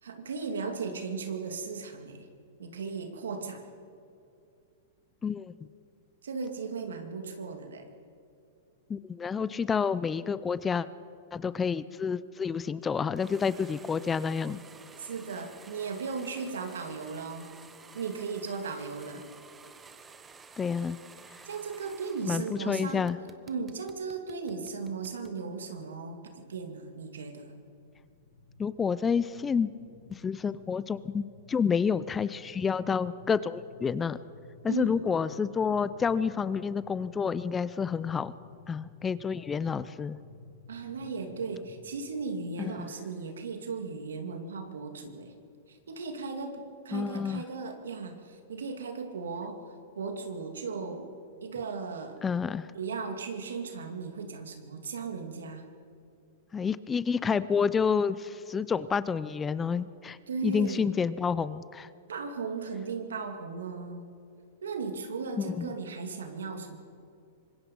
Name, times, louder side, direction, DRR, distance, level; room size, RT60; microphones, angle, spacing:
voice 1, 0.0-2.3 2.6-3.7 6.2-7.9 15.0-17.5 17.9-19.2 21.4-23.1 23.5-27.6 34.7-35.0 40.7-45.3 45.7-49.6 50.0-51.1 51.4-52.2 52.7-55.6 60.3-60.9 62.1-64.1 64.6-66.8, right 4 dB, 90° right, 6 dB, 2.5 m, -36 dB
voice 2, 5.2-5.5 8.9-10.9 11.3-14.6 20.6-21.0 22.3-23.2 28.6-29.7 30.1-34.2 34.6-38.3 38.7-40.2 42.8-42.9 46.9-47.4 52.2-52.7 56.5-60.2 60.4-61.9 65.4-65.7, left 6 dB, 15° left, 16 dB, 0.6 m, -29 dB
sound 1, 13.2-22.6 22.9-25.4, right 5 dB, 15° right, 1.2 m, -52 dB
sound 2, 27.6-41.9, left 4 dB, 90° left, 1.7 m, -54 dB
25.0 x 20.5 x 5.4 m, 2.5 s
hypercardioid pair, 125°, 0 cm